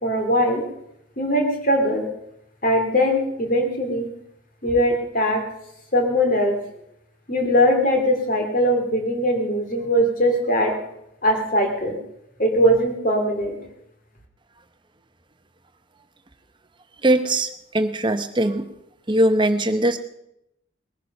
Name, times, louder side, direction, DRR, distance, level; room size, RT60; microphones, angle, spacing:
voice 1, 0.0-0.6 1.2-2.1 2.6-4.1 4.6-5.4 5.9-6.6 7.3-10.8 11.2-12.0 12.4-13.6, equal, 40° left, 3 dB, 2.8 m, -20 dB
voice 2, 17.0-18.7 19.1-20.0, right 1 dB, 25° right, 8 dB, 0.9 m, -20 dB
20.0 x 10.5 x 5.4 m, 0.80 s
head